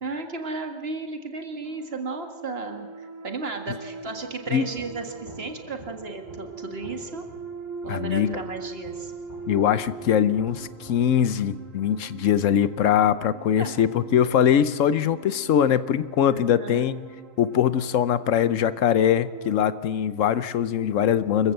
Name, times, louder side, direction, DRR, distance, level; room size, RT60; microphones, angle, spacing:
voice 1, 0.0-7.3 7.8-9.1 13.6-13.7 16.3-16.9, right 3 dB, 50° right, 5 dB, 2.0 m, -34 dB
sound 1, 1.6-19.8, right 4 dB, 80° right, 2.4 m, -42 dB
sound 2, 3.5-11.6, right 1 dB, 60° left, 5.7 m, -49 dB
voice 2, 7.9-8.4 9.5-17.1 17.4-21.5, left 9 dB, 80° left, 15 dB, 1.1 m, -22 dB
25.0 x 15.0 x 7.8 m, 1.5 s
omnidirectional pair, 1.3 m